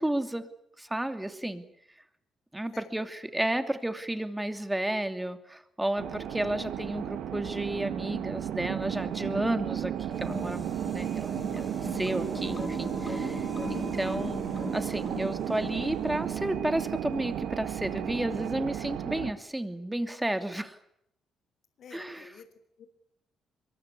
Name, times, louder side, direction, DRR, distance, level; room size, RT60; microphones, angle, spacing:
voice 1, 0.0-1.6 2.5-14.4 14.7-20.8 21.9-22.3, right 1 dB, 10° right, 8 dB, 2.8 m, -32 dB
voice 2, 2.7-3.1 21.8-22.9, left 6 dB, 65° left, 10 dB, 4.3 m, -51 dB
sound 1, 6.0-19.3, right 10 dB, 80° right, 1.8 m, -34 dB
sound 2, 10.1-16.4, left 3 dB, 20° left, 1.6 m, -39 dB
24.0 x 22.5 x 9.8 m, 0.76 s
cardioid pair, 90°, 0 cm